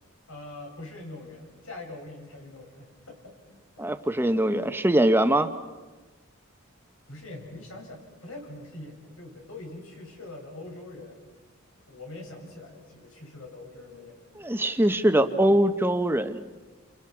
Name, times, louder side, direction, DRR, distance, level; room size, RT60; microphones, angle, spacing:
voice 1, 0.3-3.4 3.8-3.9 7.1-11.2 11.7-14.7 15.0-15.6, left 2 dB, 85° left, 1 dB, 7.3 m, -43 dB
voice 2, 3.8-5.5 14.4-16.4, right 1 dB, 10° right, 9 dB, 0.8 m, -22 dB
29.0 x 28.0 x 6.1 m, 1.3 s
head